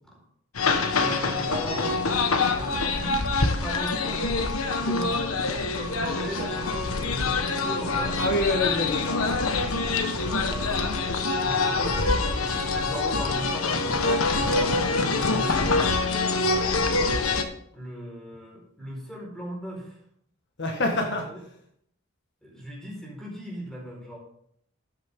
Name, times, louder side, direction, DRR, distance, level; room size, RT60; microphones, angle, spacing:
sound 1, 0.6-17.4, left 3 dB, 80° left, 1.3 m, -25 dB
voice 1, 1.0-2.0 2.5-3.2 3.6-8.2 10.2-15.8 16.4-17.2 17.7-20.0 20.6-20.9 21.3-21.4 22.4-24.2, right 1 dB, ahead, -2 dB, 4.6 m, -38 dB
voice 2, 8.2-9.8 20.6-21.3, left 1 dB, 55° left, 3 dB, 1.5 m, -27 dB
13.0 x 8.9 x 3.7 m, 0.68 s
head